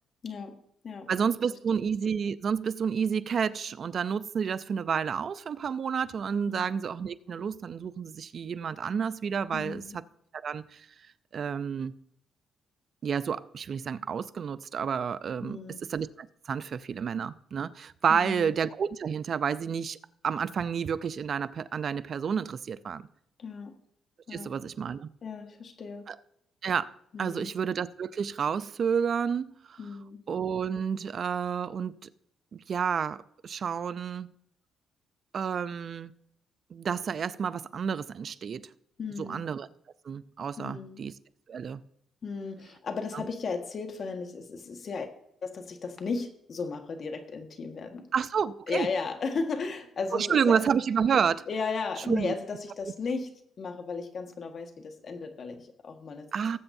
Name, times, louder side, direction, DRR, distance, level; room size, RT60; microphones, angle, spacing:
voice 1, 0.2-0.6 0.8-1.1 1.5-1.6 6.5-6.6 9.5-10.0 15.4-15.9 18.1-18.5 23.4-23.8 24.3-24.5 25.2-26.1 27.1-27.5 29.8-30.2 39.0-39.4 40.6-41.0 42.2-45.1 45.4-48.1 48.7-50.6 51.5-56.3, left 4 dB, 50° left, 1.6 m, -35 dB
voice 2, 1.1-9.8 10.4-10.8 11.3-12.0 13.0-15.6 15.9-20.0 20.2-23.0 24.3-25.1 26.1-26.2 26.6-26.9 27.2-29.8 30.3-32.0 32.5-34.3 35.3-36.1 36.7-38.7 39.2-39.7 40.1-41.1 41.5-41.8 48.1-48.9 50.1-51.5 52.1-52.3 56.3-56.6, right 7 dB, 50° right, 0.5 m, -30 dB
19.0 x 7.9 x 2.7 m
cardioid pair, 90°, 0 cm